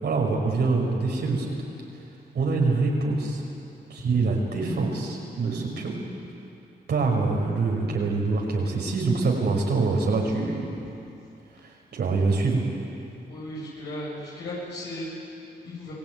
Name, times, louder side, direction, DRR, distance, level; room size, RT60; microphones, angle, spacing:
voice 1, 0.0-1.6 2.3-3.4 3.9-5.9 6.9-10.7 11.6-12.6, right 3 dB, 75° right, 0 dB, 5.6 m, -25 dB
voice 2, 13.3-15.9, left 1 dB, 90° left, -6 dB, 7.9 m, -36 dB
28.5 x 18.5 x 9.3 m, 2.7 s
cardioid pair, 60°, 17 cm